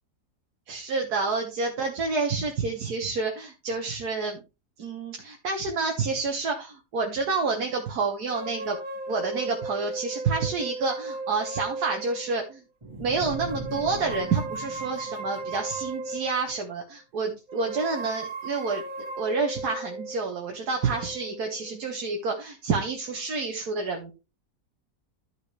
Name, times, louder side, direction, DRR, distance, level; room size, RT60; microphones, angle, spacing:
voice 1, 0.7-4.4 4.8-8.8 9.1-12.6 13.0-18.8 19.2-24.1, right 4 dB, 90° right, 2 dB, 1.7 m, -29 dB
sound 1, 8.3-12.5 13.2-16.6 17.5-21.9, right 2 dB, 65° right, 1.7 m, -36 dB
sound 2, 12.8-16.1, right 2 dB, 20° right, 2.0 m, -40 dB
12.5 x 5.7 x 3.2 m, 0.28 s
omnidirectional pair, 1.6 m